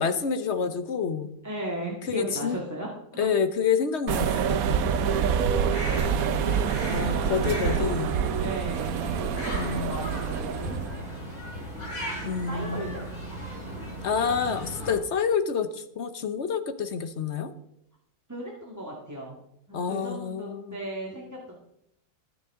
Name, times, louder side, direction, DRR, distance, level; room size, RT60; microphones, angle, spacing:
voice 1, 0.0-1.3 2.1-2.6 3.2-4.8 5.9-6.2 6.9-8.1 9.5-10.0 12.2-13.0 14.0-17.5 19.7-20.8, left 6 dB, 55° left, 10 dB, 1.0 m, -28 dB
voice 2, 1.4-3.3 7.0-8.0 8.4-11.0 11.4-11.6 12.1-13.0 18.3-19.4 19.7-21.6, right 1 dB, 10° right, -3 dB, 1.7 m, -37 dB
sound 1, 4.1-11.0, right 7 dB, 75° right, 1.2 m, -26 dB
sound 2, 5.5-15.0, equal, 80° left, 5.5 m, -37 dB
19.5 x 7.3 x 3.6 m, 0.77 s
omnidirectional pair, 1.5 m